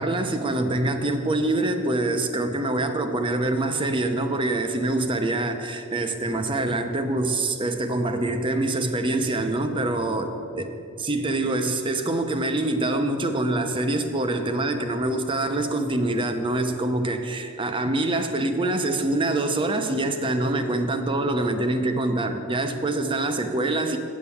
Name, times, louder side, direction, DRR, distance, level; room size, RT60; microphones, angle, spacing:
voice 1, 0.0-10.7 11.0-24.0, right 2 dB, 25° right, 7 dB, 0.6 m, -25 dB
8.4 x 8.0 x 7.0 m, 2.7 s
head